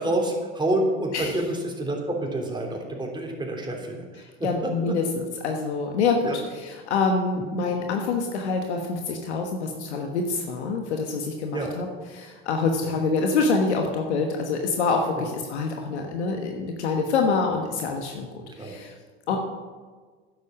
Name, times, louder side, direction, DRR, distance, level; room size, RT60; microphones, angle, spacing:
voice 1, 0.0-5.0 6.2-6.4 7.5-7.6 11.5-11.7 12.8-12.9 15.1-15.3 18.6-18.7 19.3-19.4, right 1 dB, 15° right, 0 dB, 3.4 m, -28 dB
voice 2, 4.4-18.9 19.3-19.4, left 4 dB, 85° left, 3 dB, 1.3 m, -26 dB
10.0 x 8.0 x 7.4 m, 1.5 s
hypercardioid pair, 80°, 33 cm